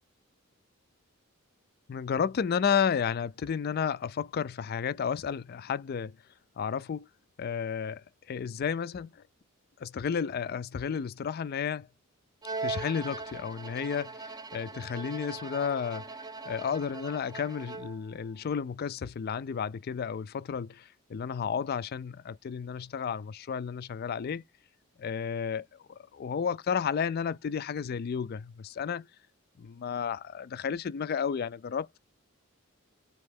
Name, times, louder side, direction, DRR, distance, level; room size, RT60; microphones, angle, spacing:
voice 1, 1.9-6.2 6.6-7.1 7.4-9.2 9.8-11.9 12.6-16.2 16.5-24.4 25.0-29.1 29.6-32.0, left 7 dB, 45° left, 0.3 m, -32 dB
Bowed string instrument, 12.4-18.1, right 3 dB, 20° right, 0.5 m, -40 dB
4.3 x 2.9 x 3.4 m
head